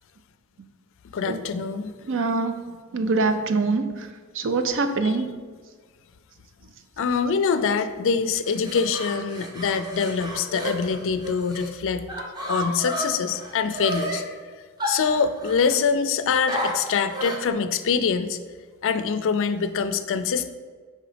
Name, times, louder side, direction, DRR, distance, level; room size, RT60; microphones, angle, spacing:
voice 1, 1.1-2.2 5.0-5.2 7.0-14.3 14.9-18.4 18.8-20.5, left 5 dB, 60° left, 10 dB, 0.4 m, -24 dB
voice 2, 2.1-2.5 2.9-3.9 4.4-5.3, right 3 dB, 60° right, 9 dB, 0.5 m, -23 dB
sound 1, 8.5-11.7 12.1-14.2 14.8-15.8 16.5-17.5, equal, 20° right, 0.8 m, -32 dB
5.4 x 3.9 x 4.9 m, 1.5 s
head